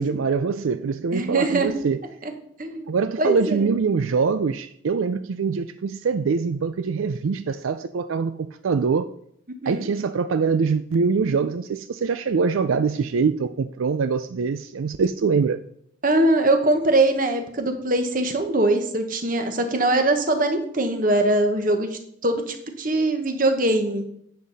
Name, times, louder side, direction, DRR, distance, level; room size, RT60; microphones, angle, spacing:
voice 1, 0.0-2.0 2.9-9.1 9.7-15.6, right 5 dB, 85° right, 0.4 m, -24 dB
voice 2, 1.1-1.8 2.6-2.9 3.2-3.7 9.6-9.9 16.0-24.1, right 2 dB, 45° right, 1.3 m, -22 dB
10.0 x 7.5 x 4.1 m
head